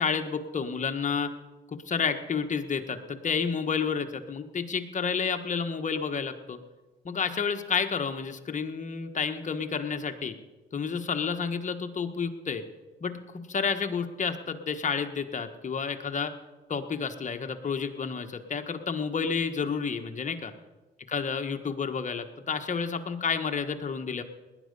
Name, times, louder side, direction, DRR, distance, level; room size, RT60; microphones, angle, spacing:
voice 1, 0.0-1.3 1.9-6.6 7.0-10.3 10.7-12.6 13.0-16.3 16.7-20.5 21.1-24.2, left 6 dB, 40° left, 7 dB, 1.4 m, -30 dB
18.5 x 11.0 x 5.4 m, 1.1 s
cardioid pair, 90°, 20 cm